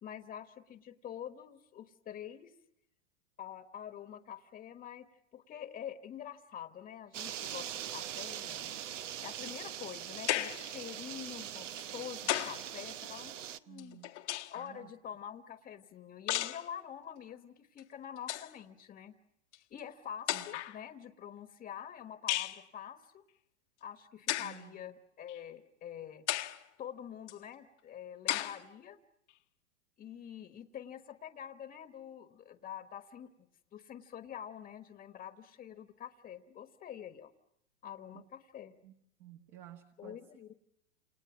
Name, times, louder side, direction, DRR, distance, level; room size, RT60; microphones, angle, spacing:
voice 1, 0.0-2.5 3.4-5.1 5.3-14.0 14.5-19.1 19.6-23.2 23.8-26.2 26.8-29.0 30.0-37.3 37.8-38.7 40.0-40.5, left 9 dB, 25° left, 7 dB, 1.3 m, -46 dB
sound 1, 7.1-13.6, right 10 dB, 80° right, 1.1 m, -42 dB
sound 2, 10.3-10.7 11.8-12.7 13.8-14.7 16.3-16.7 17.8-17.9 18.2-18.5 19.5-19.6 20.3-20.8 22.3-22.6 24.3-24.6 25.3-25.4 26.3-26.6 27.3-27.4 28.3-28.6, left 15 dB, 70° left, 1.4 m, -34 dB
voice 2, 13.7-14.2 14.6-14.9 20.3-20.5 24.4-24.8 38.1-38.2 38.8-38.9 39.2-40.2, right 11 dB, 45° right, 4 dB, 1.7 m, -53 dB
29.5 x 28.5 x 6.1 m, 0.79 s
hypercardioid pair, 130°, 36 cm